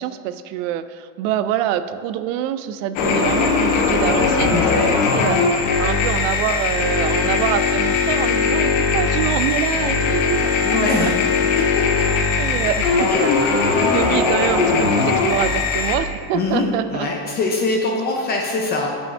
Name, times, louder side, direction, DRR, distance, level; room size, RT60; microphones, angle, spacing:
voice 1, 0.0-5.4 5.8-11.1 12.4-13.3 13.8-17.1, right 11 dB, 85° right, 12 dB, 0.5 m, -25 dB
sound 1, 3.0-16.0, left 4 dB, 80° left, 1.1 m, -19 dB
voice 2, 4.4-4.9 10.6-11.2 11.6-12.0 13.1-14.0 16.3-18.9, left 3 dB, 25° left, 0 dB, 0.5 m, -23 dB
5.6 x 5.3 x 5.4 m, 2.1 s
cardioid pair, 170°, 38 cm